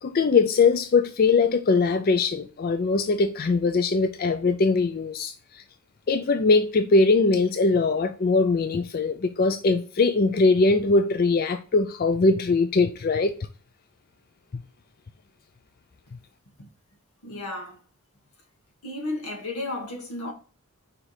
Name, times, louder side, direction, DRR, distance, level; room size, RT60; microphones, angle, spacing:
voice 1, 0.0-5.6 6.1-13.3 14.5-14.6, left 3 dB, 40° left, 0.4 m, -21 dB
voice 2, 17.2-17.8 18.8-20.3, left 2 dB, 90° left, 1.8 m, -33 dB
5.0 x 4.4 x 4.8 m
head